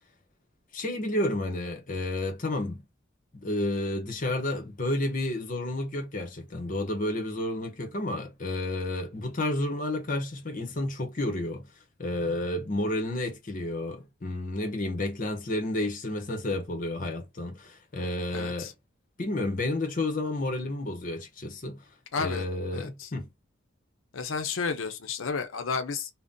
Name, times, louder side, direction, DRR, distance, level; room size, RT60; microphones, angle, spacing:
voice 1, 0.7-2.8 3.3-11.7 12.0-18.7 19.2-21.8 22.2-23.3, left 1 dB, 40° left, 0.7 m, -31 dB
voice 2, 18.3-18.7 22.1-22.4 22.7-23.1 24.1-26.1, left 5 dB, 70° left, 0.6 m, -32 dB
2.6 x 2.1 x 3.5 m
head